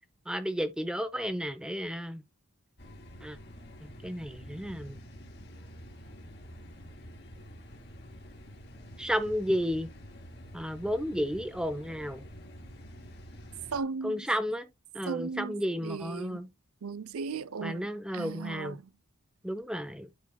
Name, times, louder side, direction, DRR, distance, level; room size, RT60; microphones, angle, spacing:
voice 1, 0.3-2.2 3.2-3.4 3.8-5.0 9.0-9.9 10.5-12.2 14.0-14.7 14.9-16.5 17.6-18.8 19.4-20.1, equal, 5° right, 0.7 m, -32 dB
sound 1, 2.8-13.8, equal, 50° left, 2.1 m, -48 dB
voice 2, 13.7-14.3 15.1-15.6 15.8-16.4 16.8-17.9 18.1-18.8, right 4 dB, 70° right, 0.5 m, -36 dB
12.5 x 4.6 x 2.2 m
head